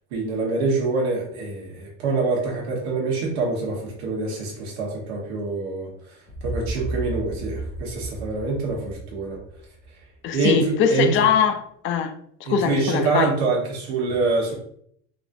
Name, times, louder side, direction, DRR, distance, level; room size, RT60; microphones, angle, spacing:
voice 1, 0.1-9.4 10.3-11.1 12.4-14.5, right 3 dB, 85° right, 1.1 m, -25 dB
sound 1, 6.3-10.1, right 2 dB, 80° left, 0.8 m, -33 dB
voice 2, 10.2-12.1 12.4-13.3, left 8 dB, 40° left, 0.4 m, -22 dB
3.4 x 2.4 x 2.5 m
supercardioid pair, 135°, 31 cm